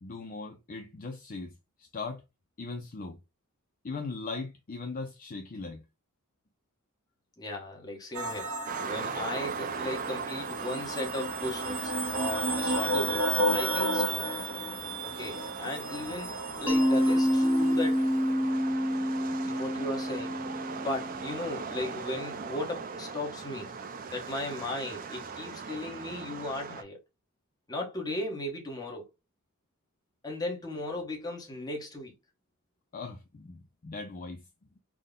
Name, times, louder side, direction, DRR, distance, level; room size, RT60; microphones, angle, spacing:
voice 1, 0.0-2.2 2.6-3.2 3.8-5.8 32.9-34.5, left 3 dB, 40° left, 0.5 m, -39 dB
voice 2, 7.4-14.3 15.0-16.3 16.6-18.1 18.4-18.5 19.4-20.4 20.8-23.7 24.1-27.0 27.7-29.1 30.2-32.1, left 1 dB, 20° left, 1.1 m, -36 dB
sound 1, 8.1-17.9, right 1 dB, 80° right, 1.0 m, -32 dB
sound 2, 8.7-26.8, right 5 dB, 40° right, 0.4 m, -40 dB
Mallet percussion, 16.7-21.4, equal, 5° right, 0.8 m, -27 dB
3.6 x 2.2 x 3.7 m
head